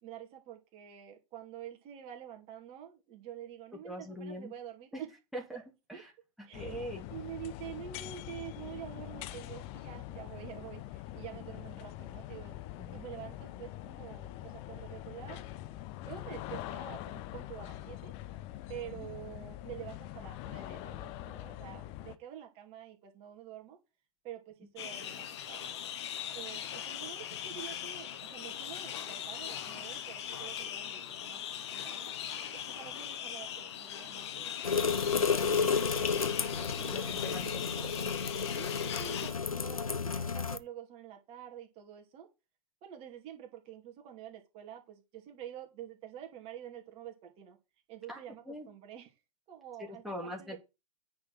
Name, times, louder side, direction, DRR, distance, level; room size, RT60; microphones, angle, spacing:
voice 1, 0.0-5.1 5.5-5.6 5.9-6.0 6.5-12.5 12.9-15.4 16.0-18.1 18.7-23.8 24.2-25.8 26.3-31.4 31.7-32.1 32.5-35.3 35.5-36.2 36.8-37.4 38.5-42.3 42.8-47.6 47.9-49.2 49.5-50.6, right 10 dB, 35° right, 3 dB, 2.5 m, -47 dB
voice 2, 3.8-4.5 4.9-5.0 5.3-5.6 5.9-6.0 6.4-7.0 12.8-13.0 36.8-38.1 48.1-48.2 48.5-48.7 50.0-50.6, equal, ahead, -1 dB, 2.9 m, -42 dB
sound 1, 6.5-22.2, left 14 dB, 30° left, 0.8 m, -44 dB
sound 2, 24.8-39.3, left 9 dB, 50° left, 1.7 m, -40 dB
sound 3, 34.6-40.6, left 5 dB, 80° left, 0.8 m, -31 dB
9.3 x 4.8 x 6.2 m, 0.26 s
figure-of-eight pair, 110°, 18 cm